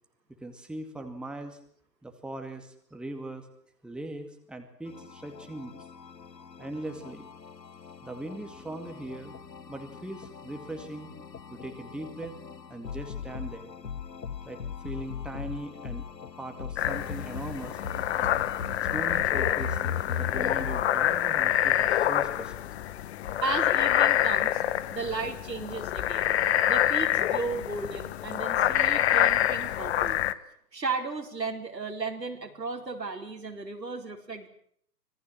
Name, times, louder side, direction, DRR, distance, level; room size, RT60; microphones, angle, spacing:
voice 1, 0.4-1.6 2.0-3.5 3.8-5.7 6.6-7.3 8.0-9.3 9.7-11.1 11.5-12.4 12.7-13.7 14.4-14.6 14.8-16.1 16.4-17.8 18.7-19.8 20.2-22.7, right 1 dB, ahead, 5 dB, 2.2 m, -40 dB
sound 1, 4.9-20.8, left 6 dB, 85° left, 1.5 m, -39 dB
sound 2, 16.8-30.3, left 12 dB, 40° left, 1.4 m, -26 dB
voice 2, 23.4-24.6 24.9-26.3 26.7-30.2 30.7-34.5, right 4 dB, 85° right, 3 dB, 4.8 m, -34 dB
26.0 x 19.0 x 7.6 m, 0.64 s
figure-of-eight pair, 125°, 49 cm